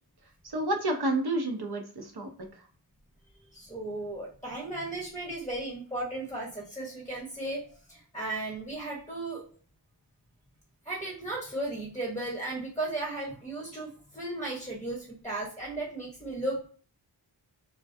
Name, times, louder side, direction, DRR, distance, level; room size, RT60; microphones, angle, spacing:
voice 1, 0.4-2.7, right 1 dB, 55° right, 4 dB, 0.6 m, -30 dB
voice 2, 3.5-7.6 7.9-9.4 10.8-16.7, right 2 dB, 5° left, -3 dB, 0.8 m, -35 dB
2.3 x 2.1 x 2.5 m, 0.42 s
wide cardioid pair, 45°, 47 cm